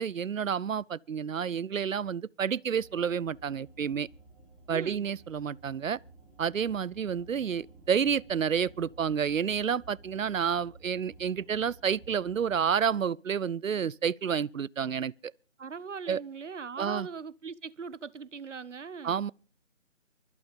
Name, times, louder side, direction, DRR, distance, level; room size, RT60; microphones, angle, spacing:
voice 1, 0.0-4.1 4.7-6.0 6.4-15.1 16.1-16.2 16.8-17.1 19.0-19.3, right 7 dB, 85° right, 0.6 m, -29 dB
sound 1, 2.7-12.9, right 2 dB, 5° right, 1.5 m, -54 dB
voice 2, 4.7-5.1 15.6-19.2, right 5 dB, 65° right, 1.0 m, -40 dB
24.0 x 8.5 x 5.2 m
figure-of-eight pair, 165°, 39 cm